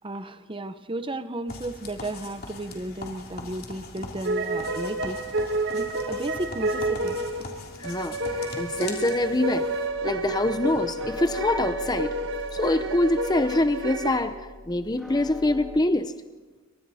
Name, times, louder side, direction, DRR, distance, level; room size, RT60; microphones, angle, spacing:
voice 1, 0.0-7.2, right 1 dB, 25° right, 0.9 m, -34 dB
sound 1, 1.5-9.9, left 3 dB, 45° left, 3.2 m, -41 dB
sound 2, 4.2-14.2, right 2 dB, 60° right, 1.9 m, -30 dB
voice 2, 7.8-9.7 10.0-12.2 12.5-16.1, left 2 dB, 20° left, 0.6 m, -25 dB
sound 3, 9.9-15.8, left 2 dB, ahead, 1.9 m, -42 dB
29.5 x 25.0 x 4.2 m
head